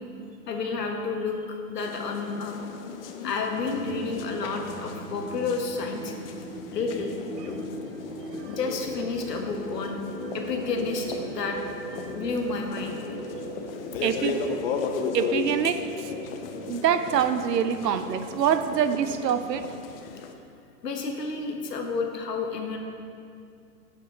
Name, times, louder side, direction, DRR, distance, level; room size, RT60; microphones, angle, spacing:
voice 1, 0.1-1.4 1.7-2.6 3.2-6.1 6.7-7.1 7.4-7.7 8.5-10.0 10.3-11.6 12.1-13.0 16.7-16.8 17.8-18.0 20.0-20.1 20.8-22.8, left 4 dB, 90° left, 3 dB, 1.3 m, -31 dB
sound 1, 1.8-20.3, left 5 dB, 40° left, 0.5 m, -36 dB
sound 2, 3.6-19.8, right 5 dB, 45° right, 0.9 m, -41 dB
voice 2, 14.0-14.4 15.1-15.8 16.7-19.6, right 8 dB, 90° right, 10 dB, 0.7 m, -25 dB
10.5 x 5.3 x 4.0 m, 2.4 s
hypercardioid pair, 135°, 47 cm